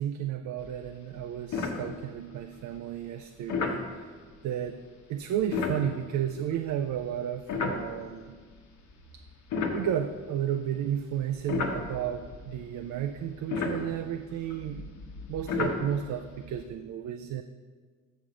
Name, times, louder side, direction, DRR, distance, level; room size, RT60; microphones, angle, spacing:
voice 1, 0.0-4.1 4.4-4.8 5.1-8.3 9.7-14.9 15.3-17.4, right 10 dB, 70° right, 7 dB, 0.5 m, -32 dB
sound 1, 0.6-0.9 1.2-1.3 1.5-2.4 3.5-3.9 5.4-8.3 8.9-10.7 11.2-16.7, left 4 dB, 75° left, 1.0 m, -34 dB
7.2 x 6.1 x 5.0 m, 1.5 s
cardioid pair, 90°, 30 cm